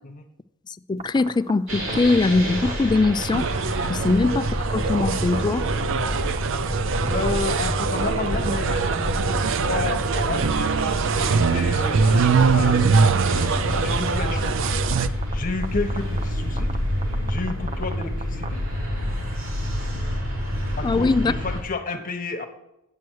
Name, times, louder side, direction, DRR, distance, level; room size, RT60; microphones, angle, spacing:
voice 1, 0.9-3.5 3.9-5.7 20.8-21.3, left 3 dB, 20° left, 0.3 m, -21 dB
sound 1, 1.0-1.5 1.9-2.1 2.6-3.8 4.1-4.3 4.7-4.9 5.3-5.4 5.8-6.6 6.9-9.9 10.2-10.9 11.2-11.8 12.1-13.0 13.4-14.0 14.3-14.5 14.8-15.3 15.6-15.7 15.9-16.2 16.6-16.8 17.0-18.5, right 4 dB, 30° right, 0.8 m, -34 dB
sound 2, 1.7-21.6, equal, 85° right, 3.8 m, -28 dB
sound 3, 3.3-15.1, right 5 dB, 65° right, 0.5 m, -23 dB
voice 2, 5.9-6.3 7.0-10.5 11.1-12.9 13.8-14.5 15.3-16.8 17.3-18.6 20.8-22.5, left 3 dB, 40° left, 1.1 m, -31 dB
9.4 x 7.8 x 4.7 m
head